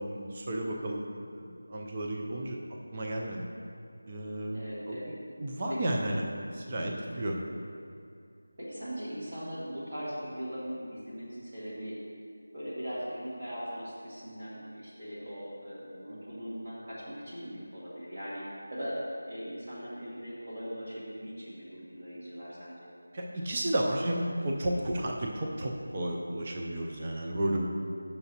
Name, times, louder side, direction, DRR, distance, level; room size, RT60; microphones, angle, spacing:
voice 1, 0.0-3.4 4.1-4.6 4.9-7.4 23.1-27.7, right 1 dB, 20° right, 0 dB, 0.3 m, -33 dB
voice 2, 4.5-5.1 5.7-5.8 6.8-7.0 8.6-12.0 12.5-18.4 18.7-19.0 19.3-22.9, equal, 35° right, -8 dB, 1.8 m, -40 dB
9.3 x 6.7 x 2.8 m, 2.4 s
figure-of-eight pair, 180°, 0 cm